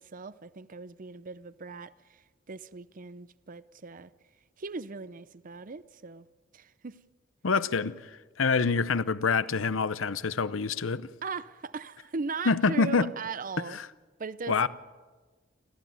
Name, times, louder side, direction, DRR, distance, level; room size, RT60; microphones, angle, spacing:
voice 1, 0.0-4.1 4.6-6.3 6.5-7.0 11.2-13.8 14.2-14.7, right 4 dB, 40° right, 0.6 m, -39 dB
voice 2, 7.4-11.1 12.5-13.1 13.8-13.9 14.5-14.7, left 4 dB, 75° left, 0.8 m, -26 dB
29.0 x 14.0 x 9.4 m
head